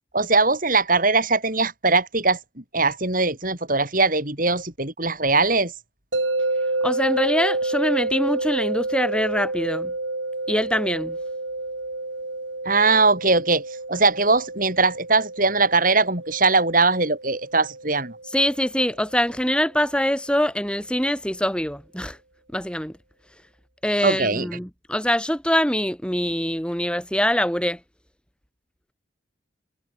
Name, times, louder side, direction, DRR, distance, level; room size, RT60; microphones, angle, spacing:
voice 1, 0.1-2.4 2.7-5.7 12.6-13.6 13.9-18.2 24.0-24.4, right 3 dB, 45° right, 6.6 m, -20 dB
sound 1, 6.1-19.2, right 2 dB, 70° right, 3.9 m, -29 dB
voice 2, 6.8-9.9 10.5-11.2 18.2-22.2 22.5-23.0 23.8-27.8, equal, 5° left, 4.9 m, -24 dB
head